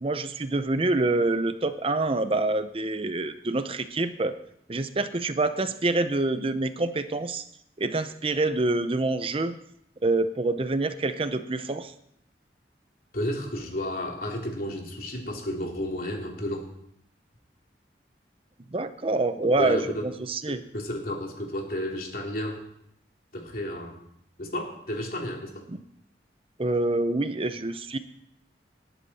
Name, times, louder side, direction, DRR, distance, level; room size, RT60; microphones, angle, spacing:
voice 1, 0.0-4.3 4.7-7.4 7.8-9.6 10.0-11.9 18.7-20.6 25.7-25.8 26.6-28.0, right 2 dB, 30° right, 11 dB, 0.6 m, -26 dB
voice 2, 13.1-16.7 19.4-20.0 20.7-22.6 23.3-23.9 24.4-25.6, left 1 dB, 55° left, 0 dB, 3.1 m, -32 dB
19.5 x 11.0 x 4.2 m, 0.74 s
head